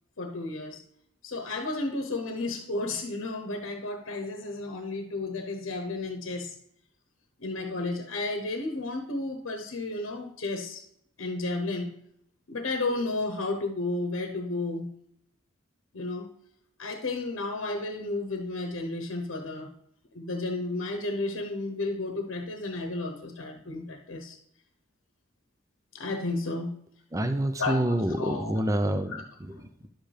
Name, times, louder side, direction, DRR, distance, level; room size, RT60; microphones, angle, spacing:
voice 1, 0.2-0.8 1.2-6.6 7.4-10.8 11.2-11.9 12.5-14.9 15.9-16.3 16.8-19.7 20.1-24.4 25.9-26.7 27.6-28.6 29.1-29.2, left 2 dB, 80° left, 4 dB, 0.9 m, -32 dB
voice 2, 27.1-29.9, right 1 dB, 15° right, 8 dB, 0.5 m, -28 dB
10.5 x 7.7 x 3.4 m, 0.73 s
head